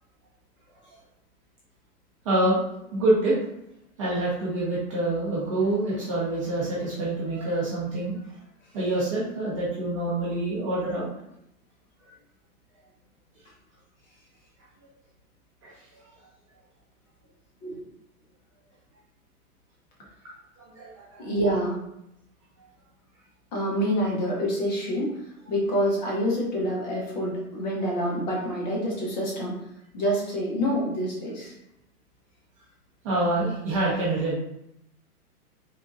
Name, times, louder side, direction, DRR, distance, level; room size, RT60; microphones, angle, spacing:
voice 1, 2.2-2.6 2.9-3.4 4.0-8.1 8.7-11.1 15.6-15.7 20.6-21.3 33.0-34.4, right 2 dB, 20° right, -7 dB, 0.7 m, -26 dB
voice 2, 21.2-21.8 23.5-25.2 25.5-29.6 29.9-31.5, equal, 30° left, -3 dB, 0.9 m, -27 dB
3.7 x 3.6 x 2.6 m, 0.82 s
hypercardioid pair, 160°, 45 cm